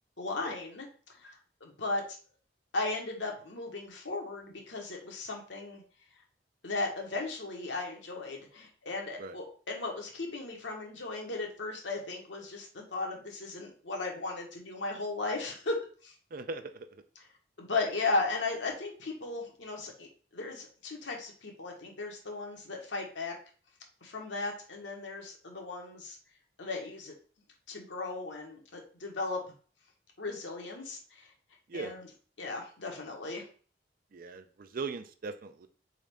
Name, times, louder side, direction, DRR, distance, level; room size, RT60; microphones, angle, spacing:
voice 1, 0.2-2.0 2.7-5.8 6.6-15.8 16.0-16.1 17.6-23.3 24.0-26.2 26.6-27.1 27.7-29.4 30.2-31.3 31.7-32.1 32.4-33.5, left 3 dB, 75° left, 0 dB, 1.2 m, -36 dB
voice 2, 16.3-17.0 31.7-31.9 34.1-35.7, right 4 dB, 50° right, 9 dB, 0.4 m, -40 dB
4.1 x 3.7 x 3.5 m, 0.42 s
head